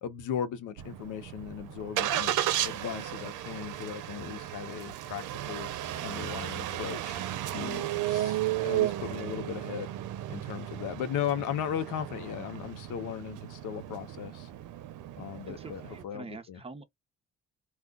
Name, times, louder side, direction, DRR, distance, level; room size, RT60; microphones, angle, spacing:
voice 1, 0.0-5.7 6.0-9.9 10.3-14.5 15.2-16.6, left 9 dB, 85° left, 0.8 m, -37 dB
Engine starting, 0.8-16.0, right 13 dB, 80° right, 0.6 m, -34 dB
voice 2, 4.2-4.5 9.0-9.1 15.5-16.8, right 3 dB, 20° right, 0.7 m, -46 dB
2.4 x 2.3 x 3.6 m
cardioid pair, 90°, 30 cm